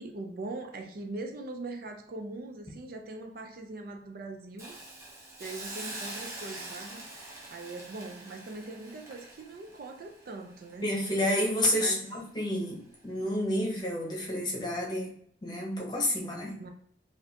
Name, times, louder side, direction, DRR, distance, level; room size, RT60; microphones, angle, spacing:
voice 1, 0.0-4.8 5.4-7.0 7.5-10.9 11.8-12.0 16.6-16.7, right 2 dB, 50° right, 4 dB, 0.4 m, -41 dB
Hiss, 4.6-11.6 12.0-12.2, right 2 dB, 15° right, 0.7 m, -44 dB
voice 2, 10.8-12.8 13.0-15.1 15.4-16.6, left 1 dB, 20° left, -2 dB, 0.8 m, -29 dB
4.1 x 2.5 x 2.8 m, 0.64 s
head